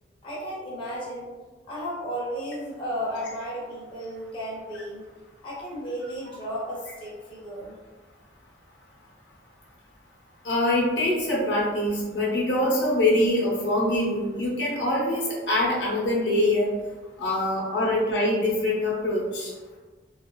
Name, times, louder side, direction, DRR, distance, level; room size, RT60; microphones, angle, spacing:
voice 1, 0.2-1.3 1.7-5.0 5.4-7.8, equal, 30° left, -7 dB, 0.7 m, -34 dB
voice 2, 10.4-16.7 17.2-19.5, left 1 dB, 70° left, -4 dB, 0.7 m, -24 dB
3.0 x 2.4 x 2.2 m, 1.3 s
head